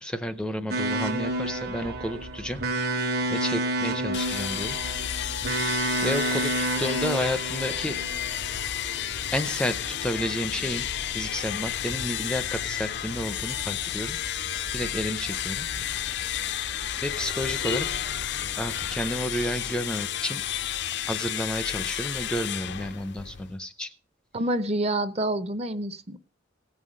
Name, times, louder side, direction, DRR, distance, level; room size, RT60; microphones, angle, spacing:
voice 1, 0.0-2.6 3.3-4.8 6.0-6.5 6.8-8.0 9.3-14.2 14.7-15.7 17.0-17.9 18.6-20.4 21.0-23.9, equal, 5° left, 10 dB, 0.6 m, -31 dB
sound 1, 0.7-19.2, right 2 dB, 50° right, 1.4 m, -32 dB
sound 2, 4.1-23.6, left 11 dB, 60° left, 0.5 m, -32 dB
voice 2, 24.3-26.2, right 1 dB, 35° right, 12 dB, 0.8 m, -27 dB
16.5 x 5.6 x 6.3 m, 0.39 s
head